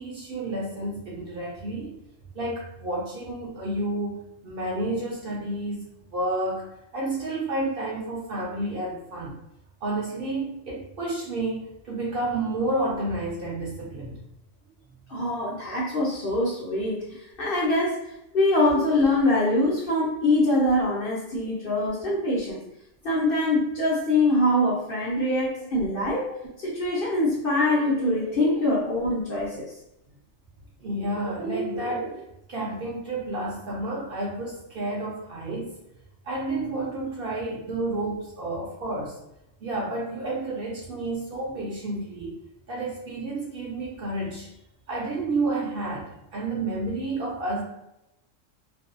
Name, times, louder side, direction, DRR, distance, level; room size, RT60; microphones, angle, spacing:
voice 1, 0.0-2.0 2.3-9.4 9.8-14.2 21.3-21.5 25.3-25.4 25.9-26.1 30.8-32.1 32.5-35.7 36.2-39.2 39.6-42.4 42.7-44.5 44.9-47.6, right 2 dB, 60° right, -4 dB, 0.7 m, -30 dB
voice 2, 15.1-22.6 23.0-29.7, left 1 dB, 60° left, -5 dB, 0.7 m, -24 dB
sound 1, 27.3-28.6 30.1-30.2 30.9-32.2, right 4 dB, 75° right, 1.1 m, -36 dB
2.6 x 2.2 x 2.4 m, 0.84 s
omnidirectional pair, 1.3 m